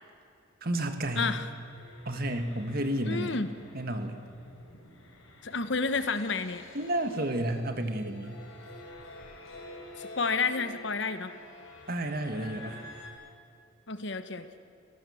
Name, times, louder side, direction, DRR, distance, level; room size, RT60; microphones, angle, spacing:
voice 1, 0.6-1.4 2.0-3.4 3.7-4.2 6.7-8.4 11.9-12.8, right 1 dB, 45° right, 7 dB, 1.7 m, -31 dB
voice 2, 1.1-1.5 3.0-3.5 5.4-6.6 10.0-11.3 13.9-14.5, left 4 dB, 60° left, 10 dB, 1.2 m, -30 dB
sound 1, 1.5-13.1, left 1 dB, 75° left, 4.7 m, -49 dB
24.5 x 17.5 x 7.2 m, 2.5 s
head